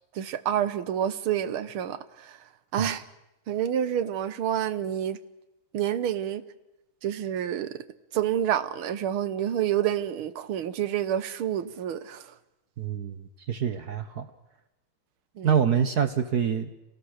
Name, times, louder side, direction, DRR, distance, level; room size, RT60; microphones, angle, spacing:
voice 1, 0.2-2.4 2.7-3.0 3.5-5.2 5.7-6.4 7.0-7.8 8.1-12.3 15.4-15.5, right 10 dB, 85° right, 1.9 m, -28 dB
voice 2, 12.8-14.3 15.4-16.7, right 8 dB, 55° right, 1.4 m, -26 dB
27.5 x 19.5 x 6.5 m
omnidirectional pair, 2.3 m